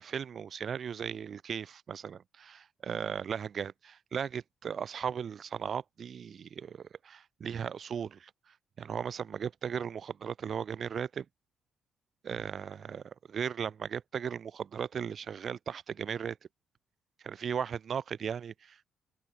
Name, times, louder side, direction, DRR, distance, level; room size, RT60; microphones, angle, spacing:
voice 1, 0.0-11.2 12.2-16.4 17.2-18.9, right 7 dB, 50° right, 0.8 m, -37 dB
cardioid pair, 90°, 0 cm